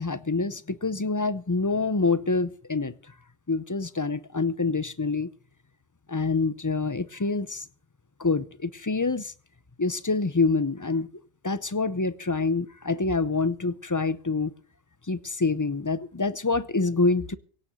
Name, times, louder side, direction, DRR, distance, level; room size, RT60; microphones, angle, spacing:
voice 1, 0.0-2.9 3.5-5.3 6.1-7.6 8.2-9.3 9.8-14.5 15.1-17.4, left 3 dB, 25° left, 0.5 m, -26 dB
17.0 x 6.5 x 9.0 m
omnidirectional pair, 1.1 m